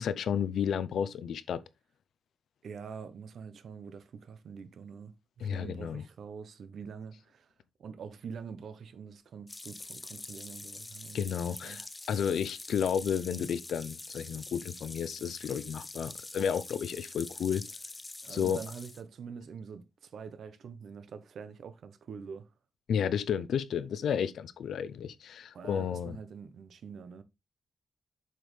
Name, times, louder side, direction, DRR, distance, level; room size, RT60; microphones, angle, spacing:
voice 1, 0.0-1.6 5.4-6.0 11.1-17.6 18.3-18.6 22.9-26.2, left 8 dB, 90° left, 0.6 m, -32 dB
voice 2, 2.6-5.1 5.4-7.5 7.8-11.8 18.2-22.5 25.5-27.2, right 6 dB, 70° right, 0.8 m, -45 dB
sound 1, 9.5-19.0, left 2 dB, 20° left, 0.5 m, -45 dB
7.6 x 5.2 x 3.2 m
wide cardioid pair, 150°, 0 cm